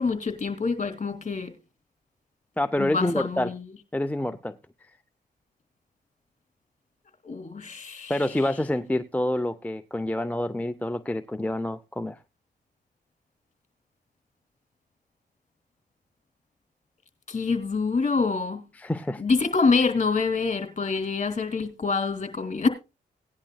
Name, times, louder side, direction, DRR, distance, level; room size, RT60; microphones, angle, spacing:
voice 1, 0.0-1.5 2.8-3.6 7.2-8.2 17.3-18.6 19.2-22.7, left 4 dB, 40° left, 2.7 m, -26 dB
voice 2, 2.6-3.5 3.9-4.6 8.1-12.2 18.8-19.2, left 1 dB, 10° left, 0.6 m, -27 dB
17.5 x 10.5 x 2.3 m
cardioid pair, 60°, 18 cm